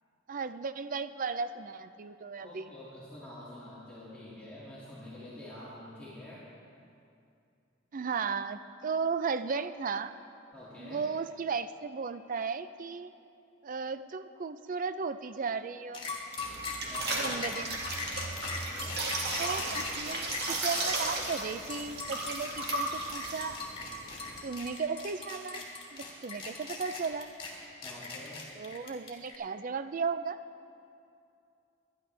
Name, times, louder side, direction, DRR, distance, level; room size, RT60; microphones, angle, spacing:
voice 1, 0.3-2.7 7.9-10.1 10.8-13.1 13.6-16.1 17.1-17.8 19.4-23.6 24.4-25.6 25.9-27.3 28.6-30.4, right 5 dB, 45° right, 12 dB, 0.4 m, -35 dB
voice 2, 2.4-6.5 10.5-11.0 16.9-17.4 18.4-19.0 27.8-28.5, left 1 dB, 5° left, -11 dB, 2.3 m, -47 dB
sound 1, 15.9-29.4, left 3 dB, 30° left, 2.4 m, -40 dB
sound 2, 16.4-24.4, right 2 dB, 60° right, 2.0 m, -35 dB
sound 3, 17.6-20.5, right 2 dB, 25° right, 2.6 m, -46 dB
24.0 x 10.5 x 3.4 m, 2.6 s
head